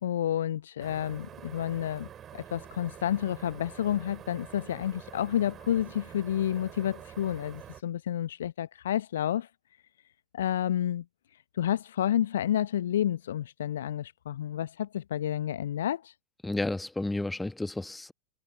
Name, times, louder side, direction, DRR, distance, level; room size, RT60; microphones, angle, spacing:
voice 1, 0.0-9.5 10.3-11.0 11.3-16.1, left 11 dB, 60° left, 0.7 m, -30 dB
sound 1, 0.8-7.8, right 10 dB, 25° right, 4.2 m, -47 dB
voice 2, 16.4-18.1, left 2 dB, 5° left, 1.3 m, -32 dB
figure-of-eight pair, 90°, 0 cm